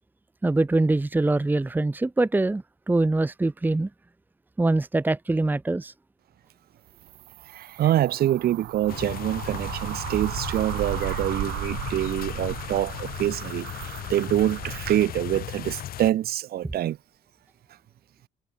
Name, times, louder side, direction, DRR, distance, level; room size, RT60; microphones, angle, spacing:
voice 1, 0.4-3.9 4.6-5.9, right 2 dB, 10° right, 1.1 m, -23 dB
sound 1, 6.9-15.0, right 18 dB, 80° right, 2.8 m, -36 dB
voice 2, 7.5-17.0, right 12 dB, 65° right, 4.5 m, -26 dB
sound 2, 8.9-16.1, left 12 dB, 60° left, 2.1 m, -36 dB
cardioid pair, 110°, 17 cm